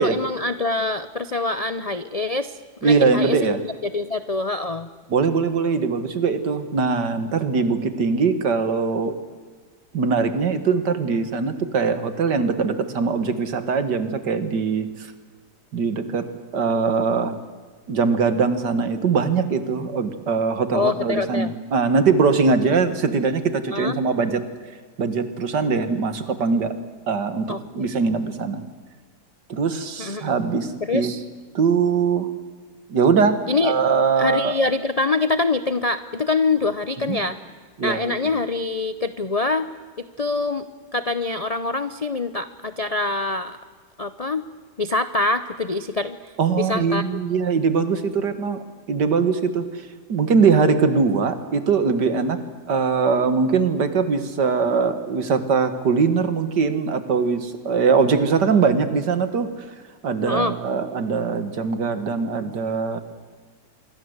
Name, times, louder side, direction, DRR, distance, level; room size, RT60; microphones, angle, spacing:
voice 1, 0.0-4.9 20.7-21.5 22.7-22.8 23.7-24.0 27.5-27.6 30.0-30.3 30.9-31.2 33.5-33.7 34.2-37.4 37.8-39.7 40.0-40.7 40.9-43.6 44.0-44.4 44.8-47.0 60.3-60.5, left 3 dB, 40° left, 12 dB, 0.5 m, -25 dB
voice 2, 2.8-3.6 5.1-9.1 9.9-15.1 15.7-16.3 16.5-17.4 17.9-24.4 25.0-26.8 27.1-28.6 29.5-31.1 31.5-32.3 32.9-34.6 37.0-37.2 37.8-38.2 46.4-52.4 52.7-59.7 60.0-63.0, right 5 dB, 80° right, 10 dB, 2.3 m, -21 dB
26.5 x 23.0 x 8.1 m, 1.5 s
omnidirectional pair, 1.8 m